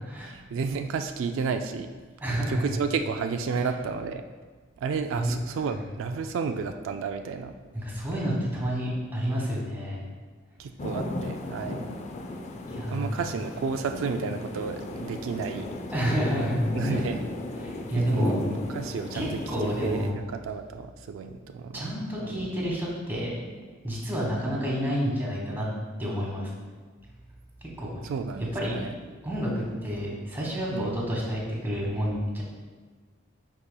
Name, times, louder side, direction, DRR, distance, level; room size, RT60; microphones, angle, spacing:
voice 1, 0.2-1.9 2.5-4.2 4.8-7.5 10.6-11.9 12.9-15.7 16.7-17.3 18.0-21.9 22.2-22.5 28.0-28.9 30.7-31.0, right 5 dB, 80° right, 6 dB, 0.3 m, -32 dB
voice 2, 2.2-2.7 5.2-5.3 7.7-10.0 12.7-13.3 15.9-16.6 16.9-17.0 17.6-18.5 19.1-20.2 21.7-23.4 23.8-25.7 26.0-26.5 27.8-28.0 28.5-28.9 29.2-32.4, equal, 10° right, -4 dB, 1.3 m, -29 dB
sound 1, 10.8-20.1, left 1 dB, 35° left, 0.4 m, -34 dB
10.0 x 4.2 x 2.2 m, 1.4 s
head